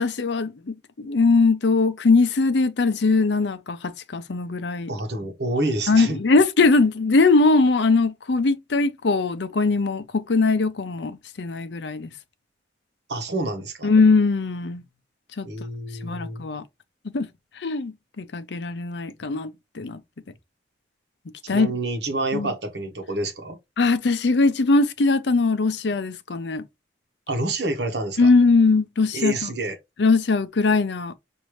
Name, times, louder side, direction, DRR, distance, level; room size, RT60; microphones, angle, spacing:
voice 1, 0.0-4.9 5.9-12.1 13.8-14.8 15.4-15.5 16.0-16.6 17.1-17.3 17.6-19.5 19.8-20.0 21.5-21.7 22.3-22.5 23.8-26.6 28.2-29.5 30.0-31.1, left 3 dB, 75° left, 0.6 m, -20 dB
voice 2, 4.9-6.2 13.1-13.9 15.4-16.4 21.4-23.6 27.3-28.3 29.1-29.8, right 2 dB, 70° right, 1.1 m, -28 dB
6.3 x 2.6 x 3.1 m
head